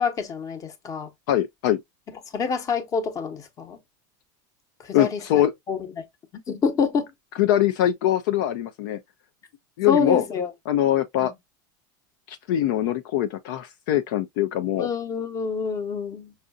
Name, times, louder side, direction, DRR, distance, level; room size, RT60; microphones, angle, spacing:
voice 1, 0.0-1.1 2.3-3.8 4.8-6.0 6.5-7.1 9.9-10.5 11.2-11.3 14.8-16.3, left 5 dB, 30° left, 1.0 m, -27 dB
voice 2, 1.3-1.8 4.9-5.5 7.4-9.0 9.8-10.2 10.7-11.3 12.3-14.9, left 12 dB, 70° left, 0.5 m, -22 dB
5.5 x 2.5 x 2.3 m
supercardioid pair, 125°, 11 cm